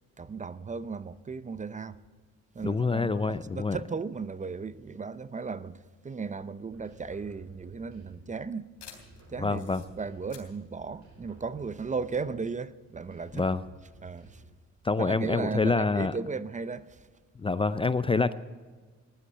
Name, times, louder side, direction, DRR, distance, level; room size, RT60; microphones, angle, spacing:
voice 1, 0.2-2.0 2.5-5.8 6.0-8.7 9.3-13.5 14.0-14.4 15.0-17.1, right 4 dB, 25° right, 0.6 m, -36 dB
voice 2, 2.6-3.8 9.4-9.8 13.3-13.6 14.8-16.1 17.4-18.3, left 4 dB, 20° left, 0.4 m, -26 dB
sound 1, 6.7-8.4 8.8-10.5 10.9-12.6 12.9-14.7, right 2 dB, 65° right, 4.9 m, -54 dB
sound 2, 7.5-12.0, left 8 dB, 75° left, 3.5 m, -54 dB
15.5 x 11.5 x 6.7 m
cardioid pair, 90°, 30 cm